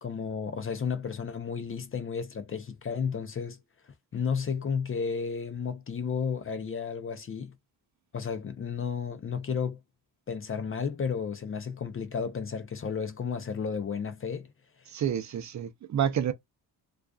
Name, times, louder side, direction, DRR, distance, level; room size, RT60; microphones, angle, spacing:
voice 1, 0.0-3.6 3.8-7.5 8.1-9.8 10.3-14.5, left 6 dB, 30° left, 0.5 m, -32 dB
voice 2, 14.9-16.3, right 9 dB, 45° right, 0.5 m, -29 dB
2.3 x 2.3 x 2.3 m
supercardioid pair, 65°, 42 cm